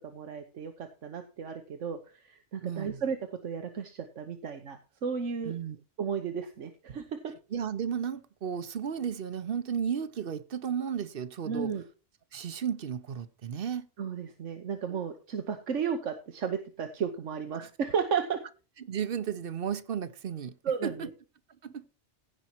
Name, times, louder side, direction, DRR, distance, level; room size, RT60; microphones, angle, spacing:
voice 1, 0.1-2.0 2.3-3.2 3.4-5.5 6.0-7.0 11.5-11.8 14.0-18.4 20.6-21.1, right 6 dB, 85° right, 1.4 m, -33 dB
voice 2, 2.6-3.0 5.4-5.8 7.5-11.7 12.3-13.9 14.9-15.0 17.5-17.7 18.8-20.5 20.8-21.1 21.6-21.9, right 8 dB, 55° right, 0.9 m, -34 dB
16.0 x 5.5 x 4.5 m
omnidirectional pair, 1.2 m